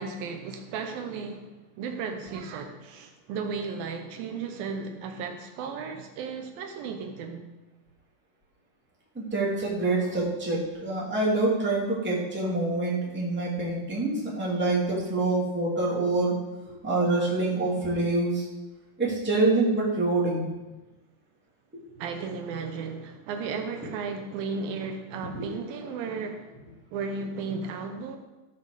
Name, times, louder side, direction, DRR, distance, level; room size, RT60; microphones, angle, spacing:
voice 1, 0.0-7.5 22.0-26.6 26.9-28.2, right 5 dB, 75° right, 5 dB, 2.6 m, -35 dB
voice 2, 9.1-16.4 16.8-18.5 19.0-20.5 25.4-25.5, right 2 dB, 5° right, -6 dB, 2.1 m, -26 dB
14.5 x 5.7 x 6.6 m, 1.1 s
omnidirectional pair, 4.3 m